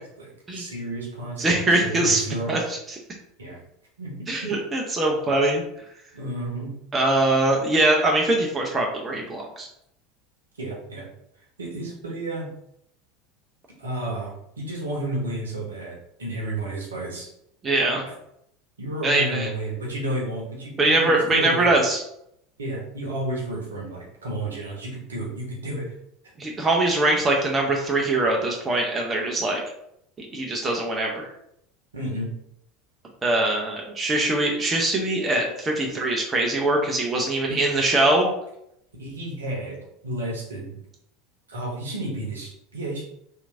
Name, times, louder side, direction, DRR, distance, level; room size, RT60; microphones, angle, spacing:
voice 1, 0.2-2.5 3.4-3.6 4.0-4.1 4.4-4.5 6.1-6.7 10.6-11.0 11.6-12.5 13.8-14.3 14.6-17.3 18.8-21.8 22.6-25.9 31.9-32.3 37.5-37.6 39.0-39.8 40.0-40.7 41.5-43.0, right 1 dB, 75° right, -3 dB, 0.9 m, -31 dB
voice 2, 1.4-2.2 2.5-2.8 4.3-5.6 6.9-9.7 17.6-18.0 19.0-19.5 20.8-22.0 26.4-29.6 30.2-31.3 33.2-38.3, right 2 dB, 25° right, 0 dB, 0.5 m, -22 dB
2.9 x 2.4 x 2.5 m, 0.76 s
figure-of-eight pair, 75°, 0 cm